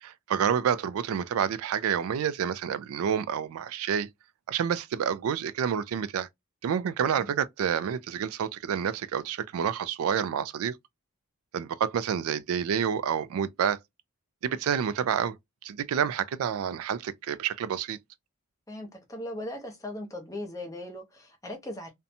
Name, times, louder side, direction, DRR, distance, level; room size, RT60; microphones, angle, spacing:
voice 1, 0.0-4.1 4.5-6.3 6.6-10.7 11.5-13.8 14.4-15.4 15.6-18.0, right 8 dB, 80° right, 0.3 m, -28 dB
voice 2, 7.0-7.3 18.7-21.9, left 1 dB, 15° left, 0.7 m, -39 dB
2.6 x 2.1 x 2.6 m
head